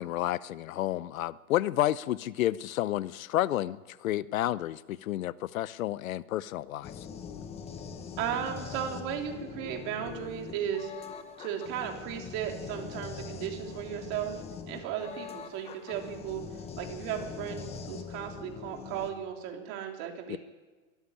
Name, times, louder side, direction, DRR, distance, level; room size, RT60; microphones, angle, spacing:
voice 1, 0.0-6.9 20.3-20.4, left 14 dB, 80° left, 18 dB, 0.8 m, -30 dB
sound 1, 6.8-19.1, left 6 dB, 15° left, 1.0 m, -42 dB
voice 2, 8.2-10.9 11.4-16.4 16.8-20.4, right 9 dB, 35° right, 2 dB, 3.4 m, -35 dB
22.5 x 14.0 x 10.0 m, 1.3 s
supercardioid pair, 165°, 40 cm